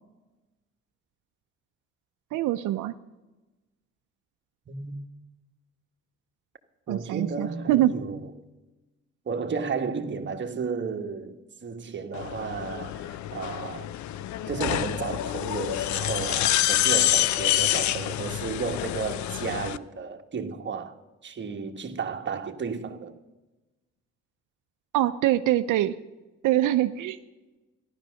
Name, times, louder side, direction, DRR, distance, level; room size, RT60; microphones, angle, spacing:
voice 1, 2.3-2.9 6.9-7.9 24.9-25.9 26.4-27.2, right 14 dB, 85° right, 0.6 m, -24 dB
voice 2, 4.7-5.0 6.9-8.3 9.3-13.9 14.5-21.0 21.2-23.2, right 5 dB, 40° right, 1.4 m, -33 dB
sound 1, 12.1-19.8, left 13 dB, 70° left, 0.6 m, -27 dB
13.5 x 11.5 x 6.3 m
cardioid pair, 90°, 30 cm